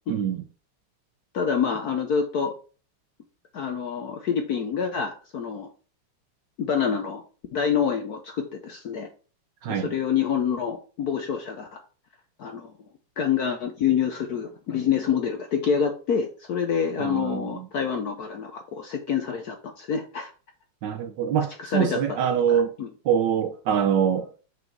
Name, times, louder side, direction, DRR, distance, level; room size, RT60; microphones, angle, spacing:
voice 1, 1.3-2.5 3.5-5.7 6.6-7.2 7.5-9.1 9.7-11.8 12.4-12.7 13.2-20.3 21.6-22.0 22.5-22.9, left 7 dB, 65° left, 1.0 m, -27 dB
voice 2, 17.0-17.6 20.8-22.7 23.1-24.3, right 8 dB, 70° right, 1.1 m, -24 dB
6.2 x 5.0 x 4.5 m
omnidirectional pair, 2.4 m